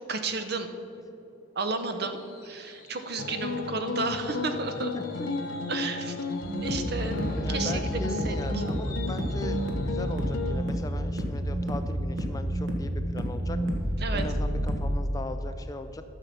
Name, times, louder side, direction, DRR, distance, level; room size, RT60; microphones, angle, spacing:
voice 1, 0.1-0.7 1.6-4.9 5.7-6.2 6.6-7.2 7.5-8.6 14.0-14.2, right 3 dB, 50° right, 7 dB, 0.8 m, -32 dB
Fireworks, 1.0-12.7 13.1-13.4 13.6-13.7, left 1 dB, 45° left, 2.0 m, -48 dB
sound 1, 3.2-10.6, left 3 dB, 80° left, 0.8 m, -33 dB
voice 2, 4.9-5.6 7.4-13.6 14.1-16.0, left 2 dB, 20° left, 9 dB, 0.4 m, -39 dB
sound 2, 6.4-15.0, equal, 75° right, 1.4 m, -30 dB
11.5 x 6.7 x 5.8 m, 2.7 s
head